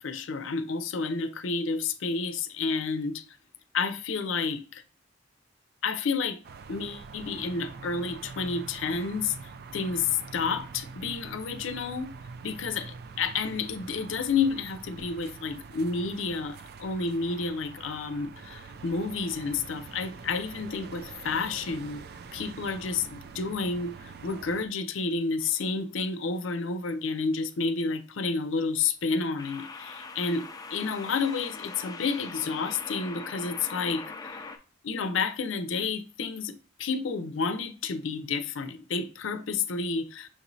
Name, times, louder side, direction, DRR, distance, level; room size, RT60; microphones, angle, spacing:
voice 1, 0.0-3.2 3.7-4.8 5.8-6.4 6.7-9.4 9.7-12.1 12.4-22.0 22.3-34.3 34.8-40.3, left 4 dB, 80° left, 0.5 m, -30 dB
sound 1, 6.4-24.7, right 5 dB, 55° right, 0.4 m, -45 dB
sound 2, 25.4-25.7 29.4-34.6, left 4 dB, 20° left, 0.4 m, -42 dB
6.3 x 3.0 x 2.7 m
head